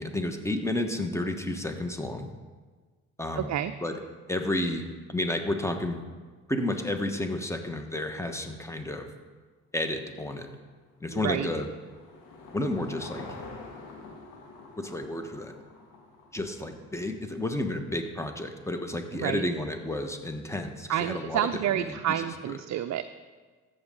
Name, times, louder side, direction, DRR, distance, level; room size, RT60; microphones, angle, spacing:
voice 1, 0.0-2.3 3.2-3.5 3.8-4.0 4.3-6.0 6.5-9.1 9.7-10.5 11.0-11.7 12.5-13.3 14.8-15.5 16.3-22.0 22.5-22.6, left 1 dB, 10° left, 6 dB, 1.5 m, -31 dB
voice 2, 3.4-3.7 11.1-11.5 19.2-19.4 20.9-23.0, right 11 dB, 50° right, 9 dB, 0.6 m, -29 dB
Car passing by / Engine, 10.6-17.0, left 3 dB, 80° left, 2.0 m, -47 dB
13.5 x 8.4 x 3.9 m, 1.4 s
hypercardioid pair, 55°, 36 cm